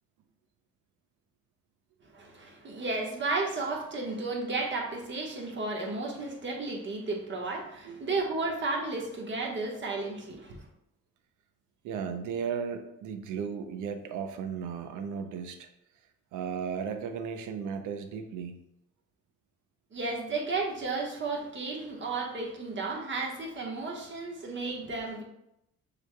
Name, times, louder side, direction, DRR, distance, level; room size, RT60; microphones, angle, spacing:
voice 1, 2.1-10.6 19.9-25.2, right 3 dB, 40° right, 0 dB, 1.2 m, -33 dB
voice 2, 11.8-15.7 16.3-18.6, right 6 dB, 85° right, 7 dB, 0.6 m, -35 dB
6.8 x 3.2 x 2.2 m, 0.82 s
cardioid pair, 90°, 30 cm